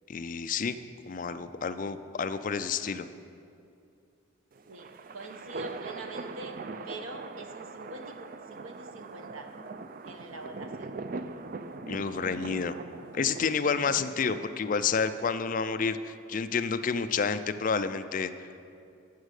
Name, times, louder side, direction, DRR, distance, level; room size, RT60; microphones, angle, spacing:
voice 1, 0.1-0.8 1.1-3.1 11.9-12.8 13.1-18.5, left 5 dB, 40° left, 11 dB, 0.4 m, -29 dB
sound 1, 4.5-15.0, right 3 dB, 40° right, 0.4 m, -42 dB
voice 2, 4.7-9.5 10.0-10.9, right 2 dB, 75° right, 5 dB, 1.0 m, -44 dB
11.5 x 7.4 x 6.5 m, 2.5 s
head